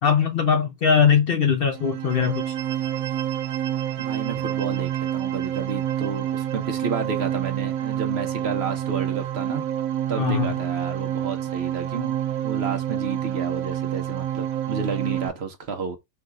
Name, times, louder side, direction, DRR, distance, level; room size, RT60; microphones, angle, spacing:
voice 1, 0.0-2.5 10.2-10.5, left 7 dB, 55° left, 0.7 m, -21 dB
sound 1, 1.7-15.3, right 11 dB, 90° right, 1.0 m, -28 dB
voice 2, 4.0-9.7 10.1-16.0, right 5 dB, 55° right, 1.0 m, -31 dB
4.7 x 2.3 x 3.7 m
omnidirectional pair, 1.4 m